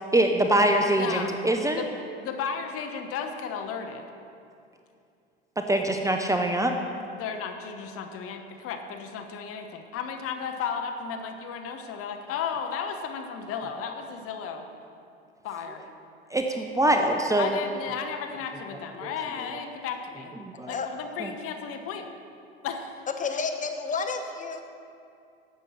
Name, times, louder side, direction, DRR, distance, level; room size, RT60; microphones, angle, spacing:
voice 1, 0.1-1.8 5.6-6.7 16.3-17.6 19.0-19.1 20.4-20.7 21.2-21.3, right 1 dB, 10° right, 4 dB, 0.7 m, -24 dB
voice 2, 0.8-1.4 1.8-1.9 2.2-4.1 7.1-14.6 15.4-15.8 17.4-20.3 20.7-22.1 22.6-23.0, left 6 dB, 45° left, 6 dB, 1.1 m, -34 dB
voice 3, 23.2-24.6, left 4 dB, 25° left, 5 dB, 1.2 m, -30 dB
12.0 x 8.0 x 5.7 m, 2.5 s
hypercardioid pair, 80°, 32 cm